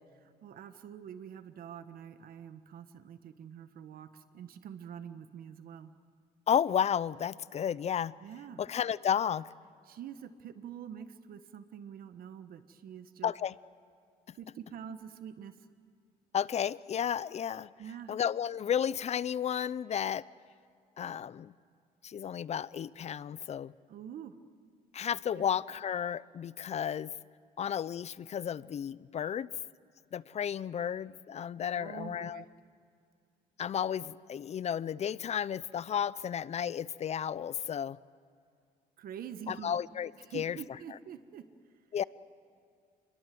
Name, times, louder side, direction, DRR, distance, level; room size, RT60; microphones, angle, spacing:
voice 1, 0.2-5.9 8.2-8.6 9.8-13.3 14.3-15.6 17.8-18.1 23.9-24.4 25.4-25.5 31.7-32.5 39.0-39.8 40.2-41.4, right 8 dB, 60° right, 10 dB, 1.5 m, -46 dB
voice 2, 6.5-8.1 8.6-9.5 13.2-13.5 16.3-17.7 18.1-20.2 21.0-21.5 22.0-23.7 24.9-27.1 27.6-29.5 30.1-32.4 33.6-38.0 39.5-40.6 41.9-42.0, left 8 dB, 40° left, 19 dB, 0.6 m, -33 dB
28.0 x 22.0 x 7.8 m, 2.3 s
cardioid pair, 110°, 17 cm